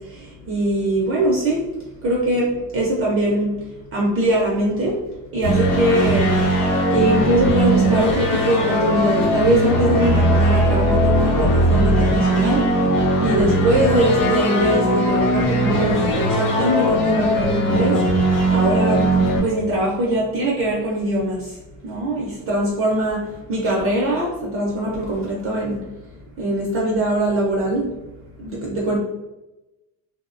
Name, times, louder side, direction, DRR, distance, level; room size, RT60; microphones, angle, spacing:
voice 1, 0.5-1.6 2.0-3.5 3.9-4.9 5.3-6.3 6.9-12.6 13.2-18.0 18.5-19.0 19.4-21.4 21.8-23.2 23.5-25.8 26.4-27.9 28.4-29.0, right 1 dB, 35° right, -3 dB, 0.4 m, -21 dB
sound 1, 5.4-19.4, right 1 dB, 45° left, 0.7 m, -19 dB
2.6 x 2.0 x 2.4 m, 1.0 s
cardioid pair, 145°, 43 cm